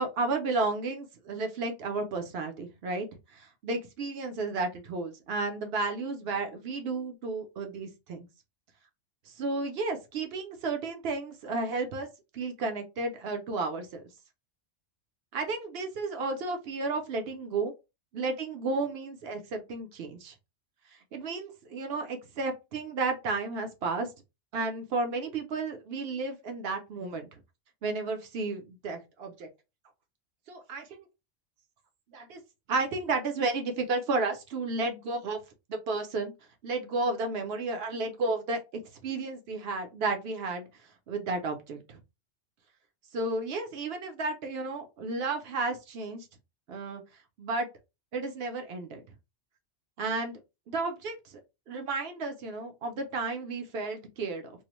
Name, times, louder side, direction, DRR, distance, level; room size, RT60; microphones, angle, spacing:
voice 1, 0.0-8.3 9.3-12.1 12.3-14.0 15.3-17.7 18.1-20.3 20.9-24.1 24.5-27.4 27.8-29.5 30.5-31.0 32.1-32.4 32.7-35.4 35.7-36.3 36.6-40.7 41.1-42.0 43.1-46.3 46.7-47.0 47.4-47.7 48.1-49.0 50.0-50.4 50.7-51.4 51.7-54.5, right 3 dB, 65° right, 0.8 m, -32 dB
2.4 x 2.1 x 2.9 m
omnidirectional pair, 1.2 m